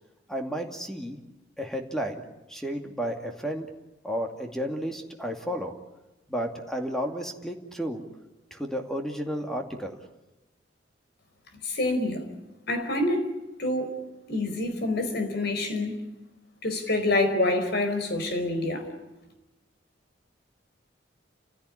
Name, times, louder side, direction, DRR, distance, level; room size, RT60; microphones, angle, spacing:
voice 1, 0.3-1.2 1.6-2.2 2.5-3.7 4.0-5.7 6.3-8.0 8.5-10.0, equal, 5° left, 4 dB, 2.4 m, -32 dB
voice 2, 11.6-12.3 12.7-13.2 13.6-13.9 14.3-16.0 16.6-18.9, left 2 dB, 60° left, 7 dB, 4.7 m, -26 dB
30.0 x 16.0 x 10.0 m, 1.0 s
head